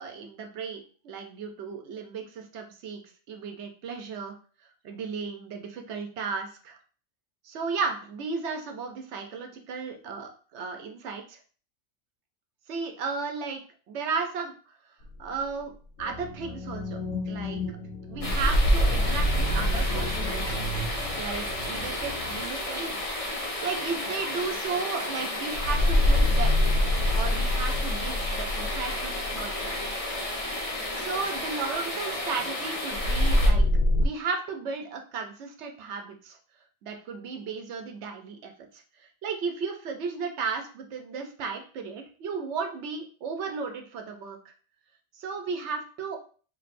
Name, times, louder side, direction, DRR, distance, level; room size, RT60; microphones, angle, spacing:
voice 1, 0.0-3.0 3.3-4.3 4.8-6.8 7.4-11.4 12.7-13.6 13.9-14.5 15.2-15.7 16.0-17.0 17.3-17.6 18.1-20.6 21.2-23.0 23.6-26.6 27.1-29.8 30.7-33.7 34.0-36.4 36.8-38.8 39.2-44.5 45.2-46.2, right 5 dB, 65° right, 4 dB, 0.9 m, -34 dB
sound 1, 15.0-15.1 18.1-22.9 25.5-30.6 32.9-34.1, left 1 dB, 65° left, 0.5 m, -25 dB
sound 2, 16.0-22.4, left 2 dB, 90° left, 1.1 m, -37 dB
sound 3, 18.2-33.5, left 1 dB, 30° left, 0.9 m, -33 dB
4.5 x 2.7 x 2.6 m, 0.40 s
omnidirectional pair, 1.4 m